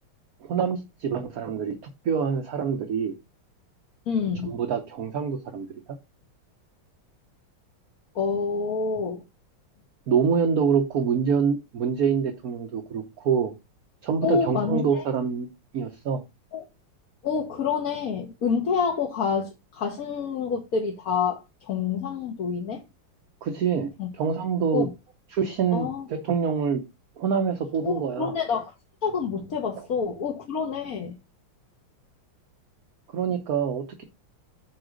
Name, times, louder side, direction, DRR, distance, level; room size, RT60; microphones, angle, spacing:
voice 1, 0.4-1.7 2.0-3.1 4.4-5.7 10.1-13.5 14.0-15.5 15.7-16.2 23.4-24.9 25.3-26.8 27.2-28.3 33.1-34.0, right 6 dB, 55° right, 1.2 m, -25 dB
voice 2, 4.1-4.5 8.1-9.2 14.2-15.0 16.5-16.6 17.2-22.8 24.0-24.1 24.7-24.9 25.7-26.0 27.8-28.7 29.0-31.1, left 5 dB, 50° left, 1.5 m, -27 dB
8.9 x 3.7 x 6.4 m
omnidirectional pair, 2.3 m